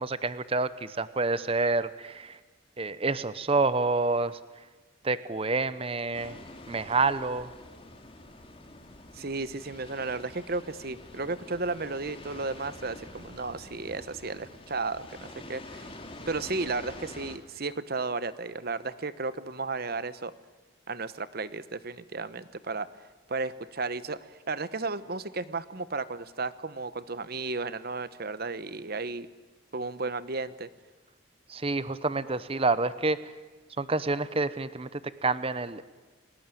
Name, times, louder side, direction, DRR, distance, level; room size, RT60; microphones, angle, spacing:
voice 1, 0.0-2.4 2.8-4.4 5.0-6.3 6.7-7.5 31.5-33.3 33.8-35.8, right 3 dB, 30° right, 15 dB, 0.8 m, -28 dB
sound 1, 6.1-17.4, left 2 dB, 30° left, 2.4 m, -47 dB
voice 2, 9.1-15.9 16.3-20.3 20.9-22.9 23.3-29.3 29.7-30.7, right 3 dB, 50° right, 15 dB, 1.0 m, -34 dB
30.0 x 18.5 x 9.2 m, 1.2 s
head